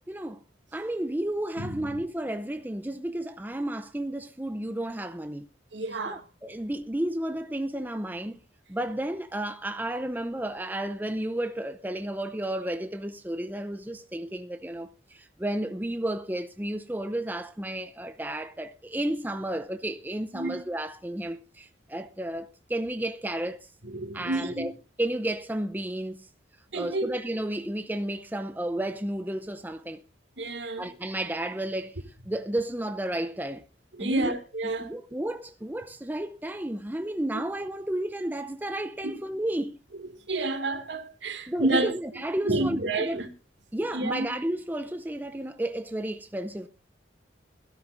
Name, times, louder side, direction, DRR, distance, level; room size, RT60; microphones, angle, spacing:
voice 1, 0.1-0.4 0.7-5.5 6.0-8.4 8.7-23.7 24.1-24.7 25.0-26.3 26.7-30.0 30.8-32.0 32.3-33.6 34.0-34.3 34.6-39.8 41.5-43.2 43.7-46.7, right 1 dB, 10° right, 0.6 m, -32 dB
voice 2, 1.6-2.0 5.7-6.2 20.3-20.6 23.8-24.7 26.7-27.2 30.4-30.9 33.9-34.9 39.0-39.2 40.3-41.9 42.4-43.3 43.9-44.3, right 2 dB, 75° right, 2.3 m, -29 dB
21.5 x 13.0 x 2.6 m
head